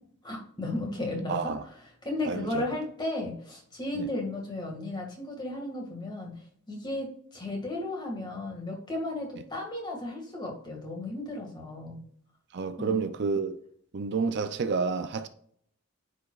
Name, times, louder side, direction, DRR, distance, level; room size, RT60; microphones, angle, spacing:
voice 1, 0.2-1.4 1.6-1.7 2.0-6.3 6.7-12.0 12.8-12.9, left 2 dB, 20° left, 1.8 m, -34 dB
voice 2, 1.3-1.6 2.3-2.6 4.0-4.1 12.5-13.6 13.9-15.3, right 5 dB, 50° right, 0.4 m, -29 dB
9.3 x 5.0 x 2.4 m
head